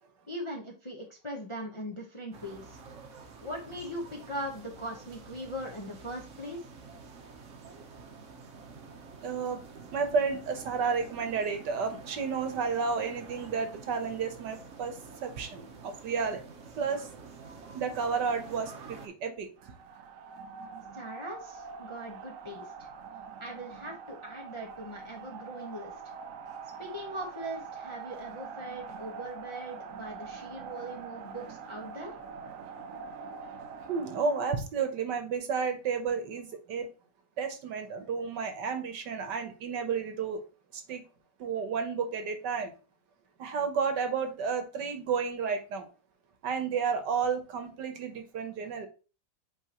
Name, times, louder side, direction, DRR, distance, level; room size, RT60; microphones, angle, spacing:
voice 1, 0.3-2.8 3.4-6.6 20.9-22.9 23.4-25.9 26.8-32.1, equal, 25° left, 0.7 m, -40 dB
sound 1, 2.3-19.1, right 4 dB, 50° right, 1.1 m, -48 dB
voice 2, 9.2-9.6 9.9-14.9 15.2-16.4 16.8-17.1 17.7-19.5 33.9-36.9 37.4-40.4 40.7-41.0 41.4-42.7 43.4-45.9 46.4-48.9, right 5 dB, 65° right, 1.5 m, -31 dB
sound 2, 19.6-34.5, right 5 dB, 85° right, 0.7 m, -44 dB
8.5 x 3.8 x 3.0 m
omnidirectional pair, 2.0 m